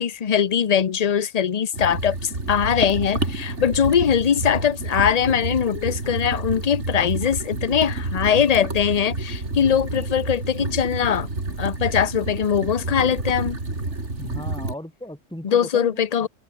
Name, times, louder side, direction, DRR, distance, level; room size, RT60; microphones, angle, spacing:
voice 1, 0.0-11.3 11.6-13.6 15.4-16.3, left 8 dB, 40° left, 0.7 m, -21 dB
sound 1, 1.7-14.7, right 2 dB, 65° right, 4.3 m, -29 dB
voice 2, 14.2-16.3, left 1 dB, 5° left, 4.7 m, -37 dB
omnidirectional pair, 1.3 m